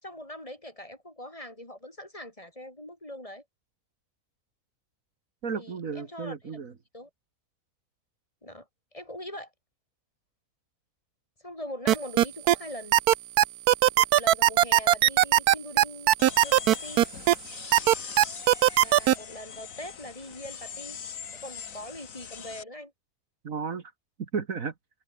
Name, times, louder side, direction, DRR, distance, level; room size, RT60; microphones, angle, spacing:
voice 1, 0.0-3.4 5.5-6.4 6.9-7.1 8.4-9.5 11.4-13.0 14.0-16.1 16.4-17.1 18.8-21.0 21.3-22.9, left 1 dB, 20° left, 4.0 m, -42 dB
voice 2, 5.4-6.7 23.4-23.9 24.2-24.7, right 5 dB, 60° right, 2.0 m, -33 dB
sound 1, 11.9-12.6 12.9-17.3 17.7-19.1, right 13 dB, 85° right, 1.2 m, -18 dB
sound 2, 16.2-22.6, left 7 dB, 60° left, 1.7 m, -42 dB
omnidirectional pair, 1.6 m